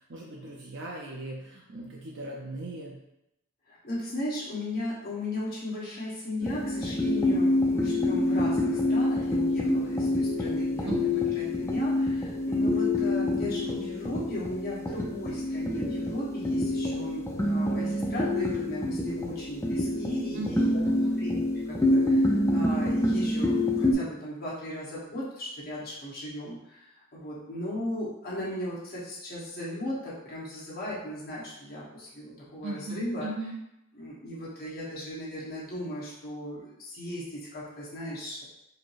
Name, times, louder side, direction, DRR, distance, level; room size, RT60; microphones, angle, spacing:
voice 1, 0.0-3.0 10.8-11.3 20.3-21.2 32.6-33.5, right 2 dB, 55° right, -2 dB, 0.7 m, -38 dB
voice 2, 3.7-20.8 21.2-33.3 33.9-38.4, left 1 dB, 45° left, -7 dB, 1.6 m, -36 dB
sound 1, 6.4-23.9, left 1 dB, 10° left, 0.5 m, -27 dB
4.9 x 2.2 x 4.6 m, 0.84 s
head